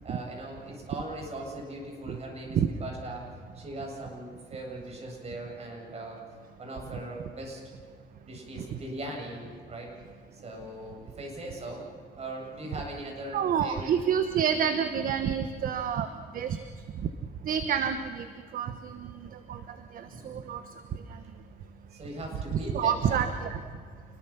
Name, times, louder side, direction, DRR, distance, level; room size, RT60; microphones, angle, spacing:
voice 1, 0.0-3.2 3.5-6.2 6.6-7.6 8.2-9.9 10.3-11.9 12.1-13.9 20.0-20.5 21.9-23.2, right 1 dB, 40° right, 0 dB, 7.9 m, -39 dB
voice 2, 13.3-16.6 17.4-18.3 18.5-19.6 19.9-20.6 20.9-21.2 22.5-23.6, right 8 dB, 55° right, 9 dB, 1.3 m, -29 dB
28.5 x 21.5 x 6.0 m, 2.1 s
cardioid pair, 110°, 17 cm